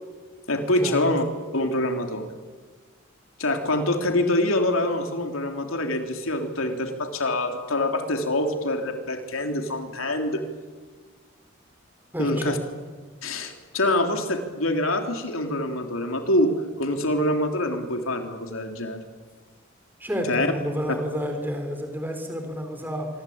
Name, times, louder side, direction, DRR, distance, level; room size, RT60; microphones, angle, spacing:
voice 1, 0.5-1.2 1.5-2.3 3.4-10.4 12.2-12.6 13.2-16.5 16.8-19.0 20.3-20.5, left 1 dB, 85° left, 5 dB, 3.4 m, -25 dB
voice 2, 12.1-12.6 20.0-23.1, equal, 10° right, 4 dB, 4.2 m, -30 dB
25.5 x 24.5 x 8.8 m, 1.5 s
head